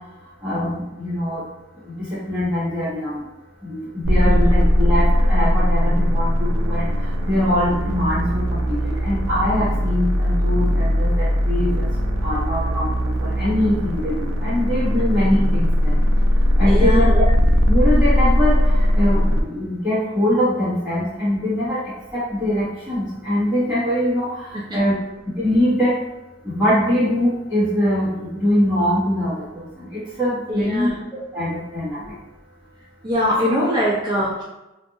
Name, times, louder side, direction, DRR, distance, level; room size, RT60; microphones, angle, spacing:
voice 1, 0.4-1.4 1.8-3.2 3.6-11.9 12.2-16.0 16.6-17.2 17.7-25.0 25.4-25.9 26.4-32.1, left 1 dB, 5° right, -16 dB, 1.1 m, -23 dB
sound 1, 4.0-19.4, equal, 85° right, 0.4 m, -19 dB
voice 2, 16.6-17.3 24.5-24.8 30.5-31.0 33.0-34.4, equal, 20° right, -7 dB, 0.5 m, -22 dB
2.5 x 2.5 x 2.7 m, 0.99 s
head